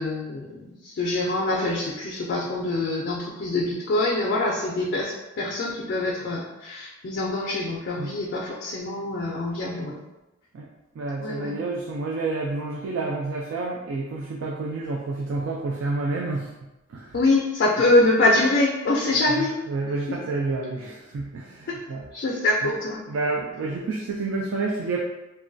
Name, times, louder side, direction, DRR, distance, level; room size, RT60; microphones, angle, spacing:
voice 1, 0.0-10.0 11.2-11.5 17.1-19.6 21.7-21.8 22.1-23.0, left 2 dB, 55° left, -3 dB, 0.4 m, -24 dB
voice 2, 11.0-16.6 16.9-17.2 19.3-22.0 22.6-22.8 23.1-25.0, right 3 dB, 65° right, -1 dB, 0.3 m, -29 dB
3.0 x 2.2 x 2.5 m, 0.99 s
head